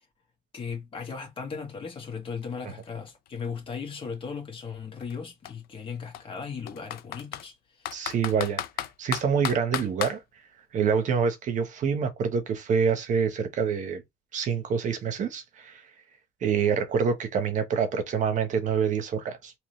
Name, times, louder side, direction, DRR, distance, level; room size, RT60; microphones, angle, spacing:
voice 1, 0.5-8.1, left 6 dB, 30° left, 1.8 m, -37 dB
Computer keyboard, 1.9-2.0 2.3-4.2 5.0-5.1 5.5-5.6 6.1-7.5 7.9-10.2, left 12 dB, 60° left, 0.5 m, -34 dB
voice 2, 7.9-8.6 9.0-10.2 10.7-14.0 14.3-15.8 16.4-19.5, right 6 dB, 45° right, 1.1 m, -26 dB
3.7 x 3.1 x 3.1 m
cardioid pair, 155°, 17 cm